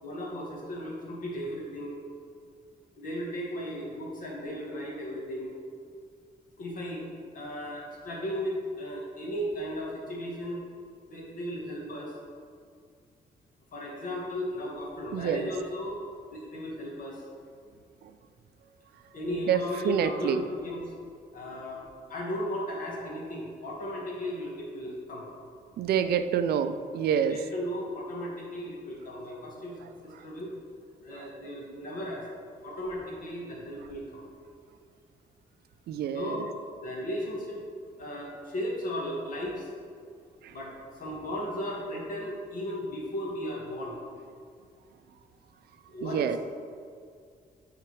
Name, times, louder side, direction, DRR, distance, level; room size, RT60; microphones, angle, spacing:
voice 1, 0.0-2.0 3.0-5.6 6.6-7.1 7.3-10.6 11.1-12.1 13.7-16.0 16.3-17.2 19.1-20.8 21.3-21.8 22.1-25.2 27.2-29.8 30.0-30.5 31.0-32.3 32.6-34.3 36.1-36.5 36.8-37.6 38.0-39.7 40.5-40.7 41.0-44.0 45.9-46.4, equal, 60° left, -3 dB, 1.7 m, -35 dB
voice 2, 15.1-15.5 18.0-18.1 19.3-20.4 25.8-27.4 30.1-30.2 31.1-31.3 35.9-36.5 40.4-40.6 46.0-46.4, right 8 dB, 85° right, 10 dB, 0.4 m, -28 dB
9.0 x 3.9 x 4.6 m, 2.2 s
wide cardioid pair, 160°, 16 cm